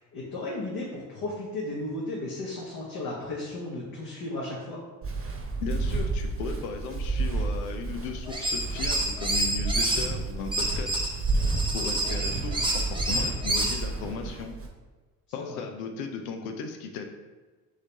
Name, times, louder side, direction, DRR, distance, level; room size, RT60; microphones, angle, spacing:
voice 1, 0.0-4.8 11.9-12.2 15.4-15.6, left 2 dB, 50° left, -5 dB, 1.3 m, -35 dB
Walk footsteps, 5.0-14.7, right 3 dB, 30° right, 1.1 m, -31 dB
voice 2, 5.6-11.1 11.7-14.5 15.3-17.1, left 5 dB, 85° left, 5 dB, 0.6 m, -36 dB
sound 1, 8.3-10.1 10.5-13.8, right 1 dB, 10° right, 0.9 m, -28 dB
4.0 x 3.2 x 4.0 m, 1.3 s
hypercardioid pair, 60°, 43 cm